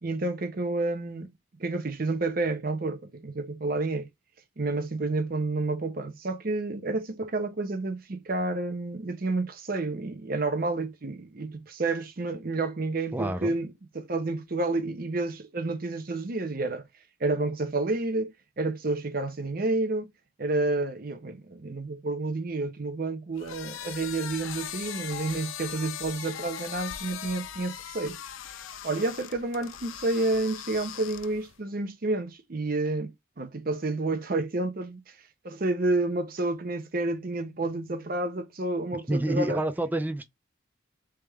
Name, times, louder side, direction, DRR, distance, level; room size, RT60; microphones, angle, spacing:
voice 1, 0.0-1.3 1.6-4.1 4.6-16.9 17.2-20.1 20.4-28.2 28.8-35.0 35.4-39.6, right 2 dB, 45° right, 0.7 m, -30 dB
voice 2, 13.1-13.5 39.1-40.3, right 1 dB, 10° right, 0.3 m, -28 dB
sound 1, 23.4-31.6, left 10 dB, 90° left, 0.4 m, -40 dB
3.4 x 3.2 x 3.3 m
head